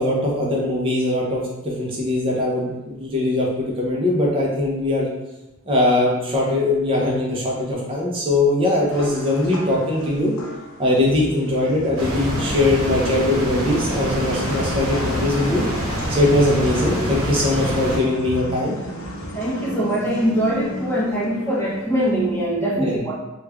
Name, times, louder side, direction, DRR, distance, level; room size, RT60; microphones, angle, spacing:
voice 1, 0.0-5.1 5.7-10.3 10.8-15.6 16.1-18.8 22.7-23.0, left 1 dB, 25° right, -3 dB, 0.6 m, -21 dB
sound 1, 8.9-22.5, left 1 dB, 75° left, 0.5 m, -35 dB
sound 2, 12.0-18.0, equal, 85° right, 0.8 m, -26 dB
voice 2, 19.3-23.1, equal, 10° left, -6 dB, 0.7 m, -22 dB
3.2 x 2.3 x 3.3 m, 0.98 s
head